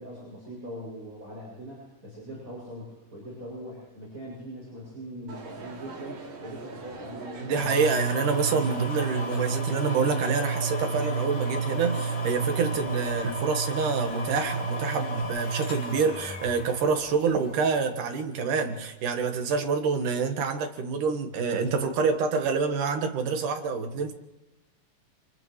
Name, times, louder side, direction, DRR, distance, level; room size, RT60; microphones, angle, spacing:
voice 1, 0.0-8.0, equal, 25° right, -5 dB, 8.6 m, -41 dB
Crowd, 5.3-15.2, right 3 dB, 65° right, 3.9 m, -42 dB
voice 2, 7.4-24.1, right 5 dB, 90° right, 5 dB, 3.2 m, -27 dB
sound 1, 7.6-17.6 18.2-18.3, right 3 dB, 90° left, 4.3 m, -31 dB
28.5 x 28.0 x 3.3 m, 1.0 s
omnidirectional pair, 3.5 m